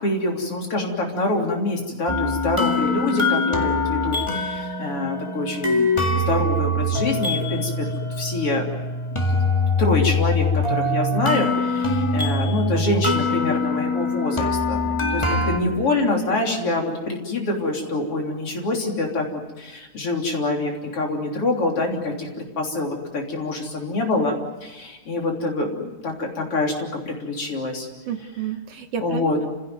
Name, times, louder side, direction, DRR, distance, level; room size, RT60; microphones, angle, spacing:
voice 1, 0.0-7.9 8.2-8.7 9.8-27.9 29.0-29.4, left 2 dB, 50° left, 1 dB, 4.2 m, -25 dB
sound 1, 2.1-15.6, left 2 dB, 15° left, 1.5 m, -23 dB
voice 2, 15.1-15.4 15.7-15.9 28.1-29.5, right 7 dB, 65° right, 7 dB, 1.9 m, -31 dB
29.5 x 16.5 x 9.3 m, 1.2 s
omnidirectional pair, 3.3 m